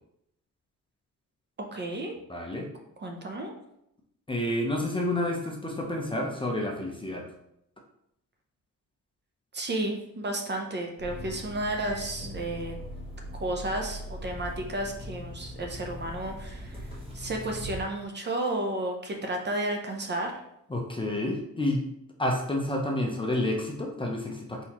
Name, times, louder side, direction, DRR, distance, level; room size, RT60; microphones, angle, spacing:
voice 1, 1.7-2.2 3.0-3.5 9.5-12.8 13.3-16.8 17.1-20.4, right 1 dB, 35° right, 2 dB, 0.6 m, -32 dB
voice 2, 2.3-2.7 4.3-7.2 20.7-21.8 22.2-24.6, left 1 dB, 15° left, 0 dB, 0.6 m, -29 dB
sound 1, 11.0-17.8, equal, 15° right, 1.2 m, -40 dB
4.1 x 4.1 x 2.9 m, 0.78 s
wide cardioid pair, 150°, 33 cm